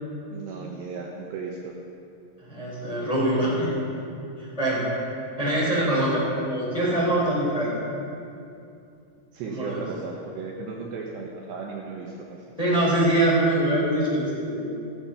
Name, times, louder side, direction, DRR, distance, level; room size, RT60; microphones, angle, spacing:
voice 1, 0.3-1.8 9.3-12.4, right 4 dB, 70° right, -1 dB, 2.9 m, -35 dB
voice 2, 2.4-3.7 4.6-4.8 5.4-6.2 6.5-7.7 9.5-9.8 12.6-14.6, right 1 dB, 10° left, -6 dB, 3.4 m, -23 dB
15.0 x 14.5 x 5.6 m, 2.6 s
omnidirectional pair, 5.7 m